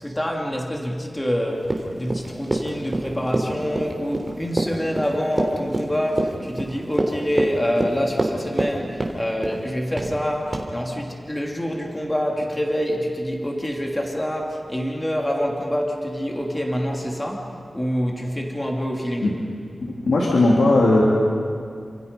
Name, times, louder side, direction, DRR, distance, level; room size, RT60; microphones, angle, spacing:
voice 1, 0.0-19.4, equal, 15° left, 0 dB, 3.0 m, -26 dB
Run, 1.6-8.7 9.0-9.6 10.0-10.2 10.5-10.7, right 2 dB, 25° right, 3.3 m, -26 dB
voice 2, 19.8-21.0, left 2 dB, 90° left, -3 dB, 3.3 m, -17 dB
29.5 x 27.0 x 5.5 m, 2.2 s
wide cardioid pair, 120°, 0 cm